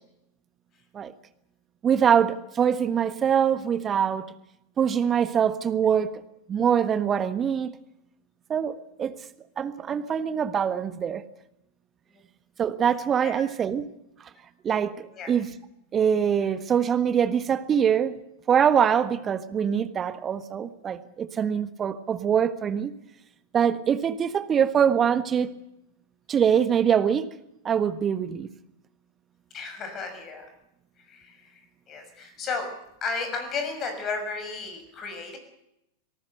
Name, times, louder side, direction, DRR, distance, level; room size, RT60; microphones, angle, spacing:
voice 1, 1.8-4.2 4.8-6.2 6.5-7.7 8.5-9.1 9.6-11.2 12.6-13.9 14.6-15.5 15.9-18.1 18.5-22.9 23.5-25.5 26.3-27.3 27.6-28.5, right 8 dB, 25° right, 12 dB, 1.4 m, -24 dB
voice 2, 29.5-30.5 31.0-31.6 31.9-32.7 33.0-35.4, left 4 dB, 30° left, 7 dB, 6.3 m, -33 dB
26.0 x 18.5 x 6.7 m, 0.84 s
figure-of-eight pair, 90°, 0 cm